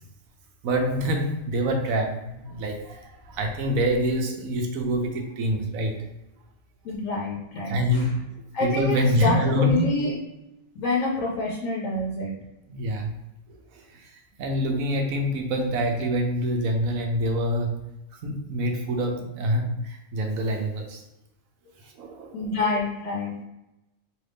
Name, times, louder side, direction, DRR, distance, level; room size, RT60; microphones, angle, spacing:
voice 1, 0.6-6.0 7.7-8.2 8.6-9.8 12.7-13.1 13.7-14.1 14.4-17.8 18.2-21.0 22.0-22.6, equal, 80° right, 3 dB, 1.2 m, -26 dB
voice 2, 6.8-8.1 8.5-10.2 10.8-12.3 22.3-23.3, left 3 dB, 70° left, -2 dB, 1.1 m, -27 dB
3.8 x 3.1 x 3.5 m, 0.94 s
omnidirectional pair, 1.4 m